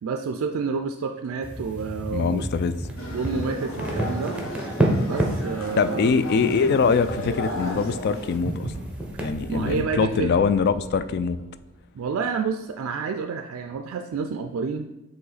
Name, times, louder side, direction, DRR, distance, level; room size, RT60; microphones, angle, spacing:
voice 1, 0.0-2.5 3.1-4.4 5.0-6.1 9.5-10.3 11.9-14.9, right 5 dB, 65° right, 6 dB, 0.3 m, -29 dB
sound 1, 0.8-12.9, equal, 85° left, 1.8 m, -48 dB
sound 2, 1.4-9.8, right 1 dB, 5° right, 0.9 m, -30 dB
voice 2, 2.1-2.8 5.8-8.7 9.2-11.4, left 5 dB, 50° left, 12 dB, 0.3 m, -23 dB
sound 3, 3.0-8.4, left 1 dB, 65° left, 1.0 m, -34 dB
7.6 x 3.1 x 4.0 m, 1.0 s
head